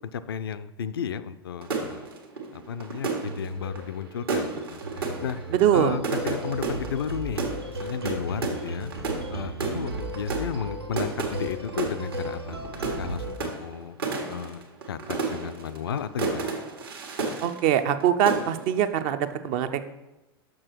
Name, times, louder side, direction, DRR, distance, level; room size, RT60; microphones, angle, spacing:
voice 1, 0.1-2.1 2.5-5.4 5.7-8.9 9.3-12.6 13.0-14.0 14.3-14.6 14.9-16.5, left 8 dB, 70° left, 14 dB, 0.4 m, -34 dB
sound 1, 1.6-18.0 18.3-18.8, right 4 dB, 70° right, 1.4 m, -32 dB
sound 2, 3.2-13.4, right 1 dB, 85° right, 0.7 m, -36 dB
voice 2, 5.6-6.0 17.4-19.9, right 10 dB, 45° right, 10 dB, 0.5 m, -23 dB
6.2 x 6.1 x 4.5 m, 1.0 s
figure-of-eight pair, 90°, 13 cm